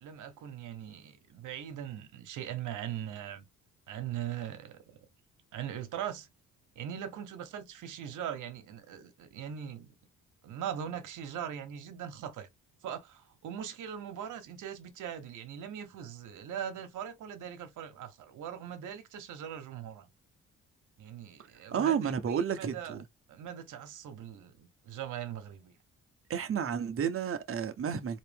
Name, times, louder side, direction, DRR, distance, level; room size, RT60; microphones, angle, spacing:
voice 1, 0.0-3.5 3.9-5.0 5.5-6.3 6.7-9.9 10.4-12.5 12.8-20.1 21.0-23.0 23.3-25.7, right 9 dB, 80° right, 1.3 m, -40 dB
voice 2, 21.7-23.0 26.3-28.2, right 8 dB, 45° right, 1.0 m, -31 dB
4.1 x 3.0 x 3.5 m
cardioid pair, 90°, 30 cm